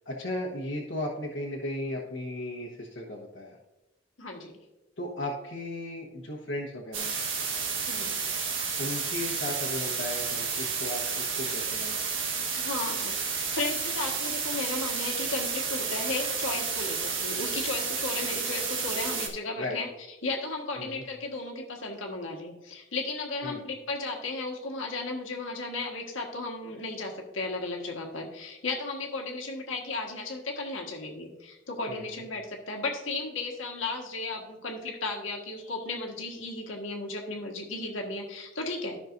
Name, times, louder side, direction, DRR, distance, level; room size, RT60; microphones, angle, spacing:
voice 1, 0.0-3.6 5.0-7.2 8.8-12.0 12.3-12.5 19.5-19.8 20.8-21.0 23.4-23.6 31.9-32.2, left 1 dB, 70° left, -3 dB, 1.3 m, -36 dB
voice 2, 4.2-4.6 7.9-8.1 12.5-19.9 20.2-39.0, left 3 dB, 90° left, 0 dB, 1.6 m, -35 dB
sound 1, 6.9-19.3, right 5 dB, 85° right, 1.4 m, -31 dB
13.5 x 6.0 x 2.6 m, 1.0 s
head